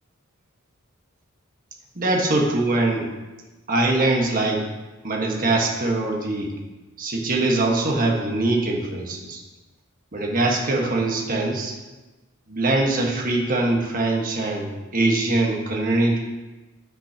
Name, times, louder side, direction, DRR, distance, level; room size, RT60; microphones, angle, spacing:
voice 1, 1.9-3.1 3.7-4.7 5.0-6.5 7.0-9.4 10.1-11.8 12.5-16.2, right 2 dB, 40° right, 0 dB, 1.5 m, -22 dB
9.5 x 8.4 x 2.9 m, 1.2 s
head